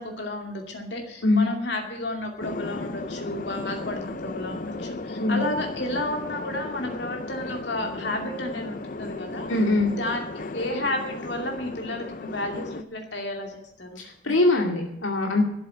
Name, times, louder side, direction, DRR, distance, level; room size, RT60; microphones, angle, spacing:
voice 1, 0.0-9.5 9.9-10.2 10.5-14.0, left 1 dB, 60° left, 2 dB, 2.5 m, -32 dB
sound 1, 2.4-12.8, left 2 dB, 45° left, 0.7 m, -35 dB
voice 2, 9.5-9.9 14.0-15.4, left 2 dB, 85° left, 2 dB, 2.3 m, -22 dB
13.0 x 7.5 x 9.7 m, 0.81 s
head